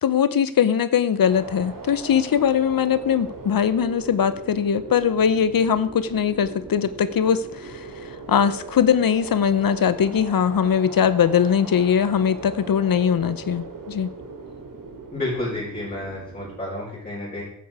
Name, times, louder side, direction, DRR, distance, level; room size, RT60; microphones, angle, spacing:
voice 1, 0.0-14.1, left 8 dB, 80° left, 14 dB, 0.8 m, -21 dB
sound 1, 1.2-16.6, right 3 dB, 70° right, 2.6 m, -39 dB
voice 2, 15.1-17.4, left 1 dB, 25° left, -9 dB, 6.3 m, -30 dB
14.5 x 11.5 x 4.8 m, 0.69 s
wide cardioid pair, 175°, 34 cm